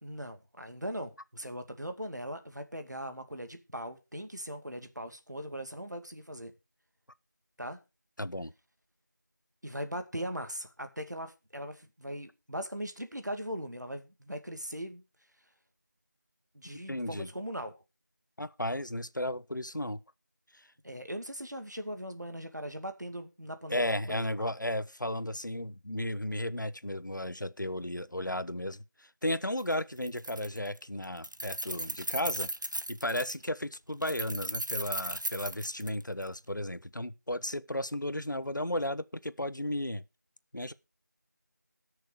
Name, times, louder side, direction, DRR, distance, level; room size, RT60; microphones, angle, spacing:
voice 1, 0.0-6.5 7.6-7.8 9.6-15.0 16.5-17.8 20.8-24.5, equal, 70° right, 2.3 m, -40 dB
voice 2, 8.2-8.5 16.9-17.3 18.4-20.0 20.5-20.7 23.7-32.5 32.9-40.0 40.5-40.7, left 1 dB, 80° left, 1.0 m, -34 dB
Keys jangling, 29.6-29.7 30.0-30.8 31.0-33.5 34.0-36.3, right 1 dB, 90° right, 0.9 m, -36 dB
18.0 x 6.5 x 4.8 m
figure-of-eight pair, 180°, 10 cm